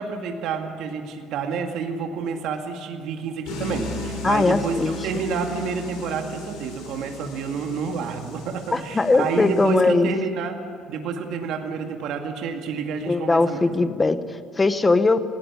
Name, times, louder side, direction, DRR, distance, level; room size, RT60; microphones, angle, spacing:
voice 1, 0.0-10.5 10.9-13.6, right 5 dB, 65° right, 4 dB, 2.0 m, -29 dB
sound 1, 3.4-9.7, left 2 dB, 90° left, 6.7 m, -36 dB
voice 2, 4.2-5.0 8.7-10.1 13.1-15.3, left 3 dB, 15° left, 12 dB, 0.8 m, -20 dB
19.0 x 16.5 x 9.9 m, 2.1 s
cardioid pair, 170°, 0 cm